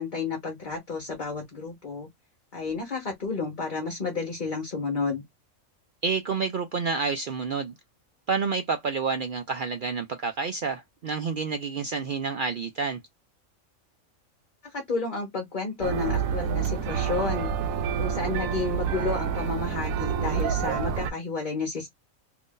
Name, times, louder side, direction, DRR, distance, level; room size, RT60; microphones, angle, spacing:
voice 1, 0.0-2.1 2.5-5.2 14.6-17.5 18.0-21.9, left 4 dB, 40° left, 1.0 m, -31 dB
voice 2, 6.0-7.7 8.3-13.0, right 5 dB, 65° right, 0.5 m, -29 dB
sound 1, 15.8-21.1, right 7 dB, 85° right, 1.0 m, -28 dB
2.8 x 2.6 x 3.6 m
omnidirectional pair, 1.4 m